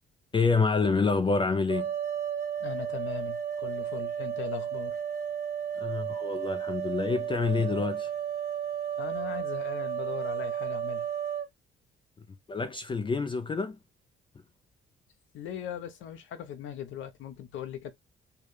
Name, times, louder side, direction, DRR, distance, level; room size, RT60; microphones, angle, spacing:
voice 1, 0.3-1.9 5.8-8.1 12.5-13.8, left 4 dB, 25° left, 0.4 m, -27 dB
sound 1, 1.7-11.5, right 9 dB, 40° right, 1.5 m, -33 dB
voice 2, 2.6-5.0 9.0-11.1 15.3-17.9, left 9 dB, 80° left, 0.8 m, -39 dB
4.6 x 2.3 x 3.2 m
cardioid pair, 90°, 20 cm